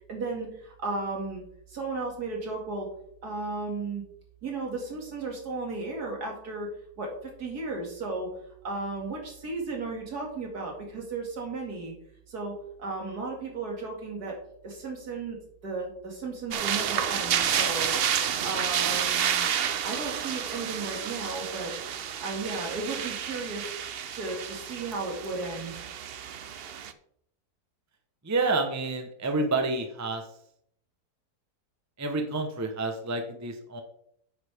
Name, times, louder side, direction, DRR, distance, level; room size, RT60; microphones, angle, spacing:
voice 1, 0.1-1.4 1.7-2.9 3.2-4.0 4.4-6.7 7.0-8.3 8.6-11.9 12.3-14.4 14.6-15.4 15.6-17.9 18.4-19.5 19.8-21.7 22.2-23.8 24.1-25.8, right 3 dB, 65° right, 0 dB, 2.8 m, -34 dB
sound 1, 16.5-26.9, right 8 dB, 85° right, 0.5 m, -30 dB
voice 2, 28.2-30.2 32.0-33.8, right 3 dB, 15° right, 5 dB, 0.8 m, -29 dB
9.4 x 8.1 x 3.6 m, 0.69 s
omnidirectional pair, 1.8 m